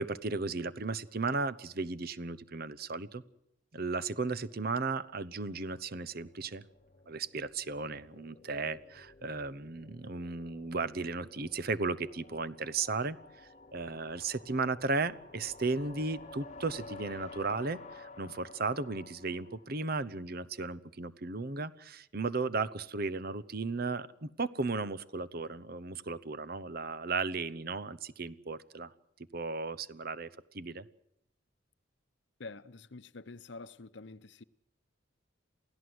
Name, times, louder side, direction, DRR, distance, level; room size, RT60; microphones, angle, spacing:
voice 1, 0.0-3.2 3.7-6.6 7.1-28.9 29.3-30.3 30.5-30.9, right 3 dB, 50° right, 0.9 m, -35 dB
sound 1, 5.0-20.2, left 3 dB, 35° left, 1.2 m, -53 dB
voice 2, 32.4-34.4, left 3 dB, 60° left, 0.8 m, -47 dB
28.5 x 16.5 x 7.8 m
head